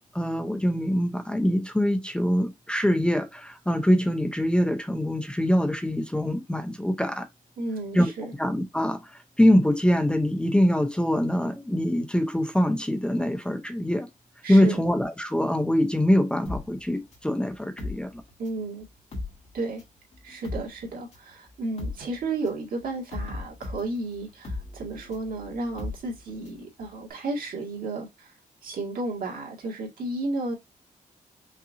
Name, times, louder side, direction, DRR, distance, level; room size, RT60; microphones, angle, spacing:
voice 1, 0.1-7.3 7.9-8.1 8.4-14.1 14.5-18.2, equal, 5° left, 0.6 m, -24 dB
voice 2, 7.6-8.3 14.4-14.8 18.4-18.9 19.5-19.8 20.2-28.3 28.6-30.5, right 2 dB, 80° right, 2.0 m, -33 dB
sound 1, 16.4-18.7 19.0-26.7 27.0-27.1, left 2 dB, 50° left, 2.0 m, -37 dB
5.5 x 2.6 x 2.6 m
wide cardioid pair, 150°, 14 cm